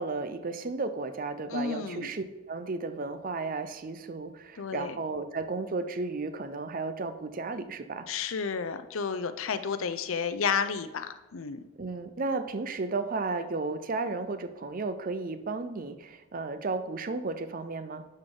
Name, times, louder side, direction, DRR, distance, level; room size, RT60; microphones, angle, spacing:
voice 1, 0.0-8.1 11.8-18.0, right 3 dB, 40° right, 10 dB, 0.5 m, -34 dB
voice 2, 1.5-2.1 4.6-5.0 8.1-11.6, left 6 dB, 70° left, 11 dB, 0.5 m, -31 dB
11.5 x 3.9 x 3.8 m, 1.1 s
head